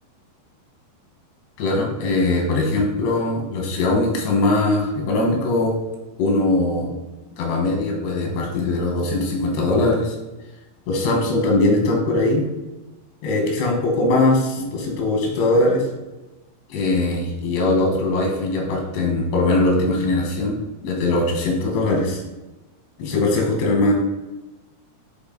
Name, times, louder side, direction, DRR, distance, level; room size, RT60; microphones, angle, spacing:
voice 1, 1.6-5.8 6.2-6.9 7.4-10.1 10.9-12.5 13.2-15.8 16.7-22.2 23.0-23.9, left 2 dB, 90° left, 0 dB, 3.3 m, -21 dB
7.9 x 3.5 x 3.8 m, 1.1 s
omnidirectional pair, 4.8 m